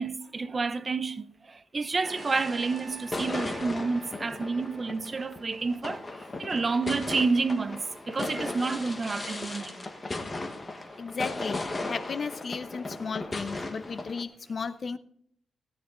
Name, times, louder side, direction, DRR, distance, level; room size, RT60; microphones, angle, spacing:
voice 1, 0.0-6.0 6.4-9.7, right 4 dB, 30° right, 0.6 m, -29 dB
sound 1, 1.9-11.0, right 1 dB, 10° right, 4.1 m, -55 dB
Trumpet, 1.9-6.2, right 7 dB, 75° right, 1.6 m, -51 dB
sound 2, 2.0-14.2, left 2 dB, 25° left, 1.4 m, -37 dB
voice 2, 11.0-11.6 11.9-15.0, left 5 dB, 40° left, 0.8 m, -34 dB
17.5 x 10.0 x 3.8 m
wide cardioid pair, 145°, 0 cm